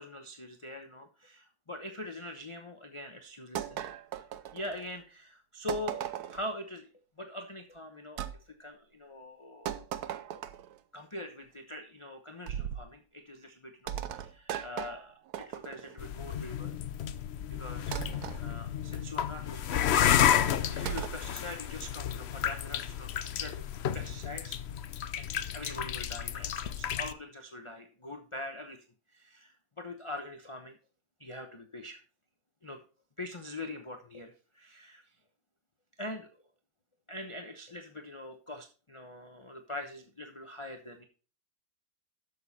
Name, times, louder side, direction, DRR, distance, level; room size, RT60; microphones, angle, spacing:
voice 1, 0.0-3.8 4.5-6.9 7.2-9.7 10.9-16.7 17.5-20.2 20.7-23.6 23.9-24.6 25.2-28.8 29.1-30.8 31.2-32.0 32.6-32.8 33.2-35.0 36.0-36.3 37.1-41.0, left 1 dB, 25° left, 4 dB, 0.8 m, -43 dB
sound 1, 3.6-5.0 5.7-6.5 8.2-8.4 9.7-10.8 12.5-12.9 13.9-16.0 17.9-18.4 20.9-21.2, right 10 dB, 70° right, 1.2 m, -37 dB
sound 2, 16.0-27.1, left 9 dB, 85° left, 0.5 m, -31 dB
11.5 x 6.9 x 4.2 m, 0.37 s
omnidirectional pair, 1.9 m